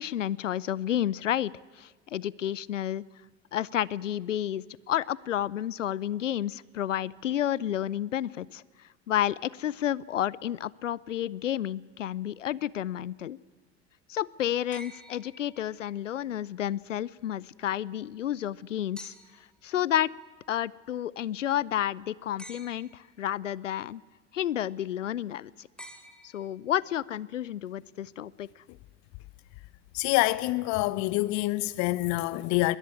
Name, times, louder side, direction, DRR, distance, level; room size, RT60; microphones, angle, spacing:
voice 1, 0.0-3.0 3.5-8.6 9.1-13.4 14.1-19.1 19.6-20.1 20.5-24.0 24.3-25.7 26.2-28.5, left 11 dB, 80° left, 0.6 m, -31 dB
sound 1, 14.7-16.1 19.0-19.6 22.4-23.2 25.8-26.8 28.4-28.5, equal, ahead, 3.1 m, -49 dB
voice 2, 29.9-32.8, left 19 dB, 45° left, 0.9 m, -26 dB
21.0 x 21.0 x 8.7 m
figure-of-eight pair, 75°, 37 cm